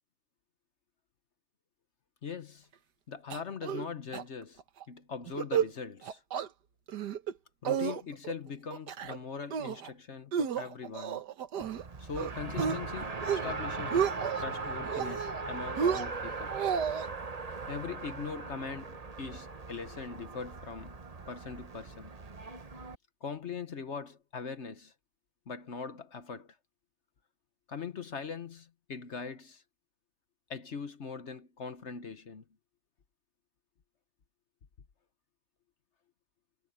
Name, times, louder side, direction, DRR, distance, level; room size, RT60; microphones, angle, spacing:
voice 1, 2.2-2.7 3.1-4.6 4.9-6.2 7.6-11.2 12.0-16.5 17.7-21.0 21.3-22.1 23.2-24.9 25.5-26.6 27.7-29.6 30.5-32.4, left 5 dB, 45° left, 1.1 m, -41 dB
sound 1, 3.3-3.9 4.1-4.2 4.6-4.8 5.3-5.7 6.0-6.5 6.9-7.3 7.6-8.3 8.7-9.2 9.5-9.9 10.3-11.8 12.2-12.8 13.1-13.5 13.8-14.4 14.9-15.4 15.8-17.1, right 7 dB, 70° right, 1.7 m, -32 dB
Race car auto racing, 11.6-22.9, right 3 dB, 25° right, 1.0 m, -39 dB
omnidirectional pair, 1.9 m